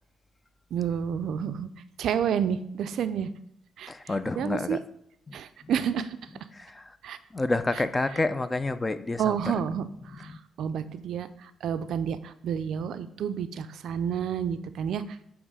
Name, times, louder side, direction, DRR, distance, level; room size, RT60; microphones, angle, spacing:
voice 1, 0.7-1.7 2.0-3.3 3.8-4.8 5.3-6.2 7.0-7.2 9.2-15.0, right 8 dB, 70° right, 12 dB, 0.3 m, -30 dB
voice 2, 3.9-4.8 5.3-5.4 6.3-6.8 7.3-9.6 9.9-10.4, left 2 dB, 20° left, 13 dB, 0.4 m, -29 dB
7.2 x 3.0 x 4.8 m, 0.73 s
cardioid pair, 90°, 0 cm